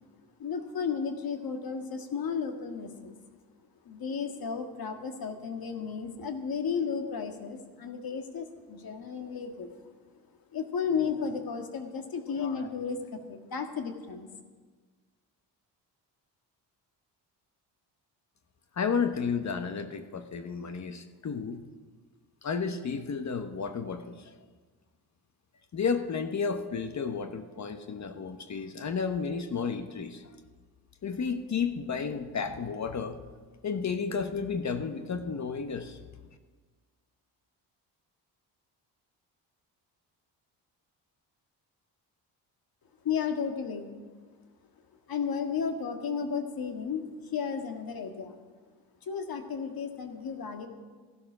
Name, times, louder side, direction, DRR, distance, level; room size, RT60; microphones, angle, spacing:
voice 1, 0.4-3.1 3.9-9.7 10.5-14.3 43.0-44.0 45.1-48.4 49.0-50.7, left 6 dB, 55° left, 6 dB, 1.8 m, -33 dB
voice 2, 18.8-21.6 22.4-24.3 25.7-30.3 31.0-33.2 33.6-36.0, left 5 dB, 40° left, 9 dB, 1.0 m, -32 dB
14.0 x 11.5 x 6.2 m, 1.4 s
cardioid pair, 80°, 42 cm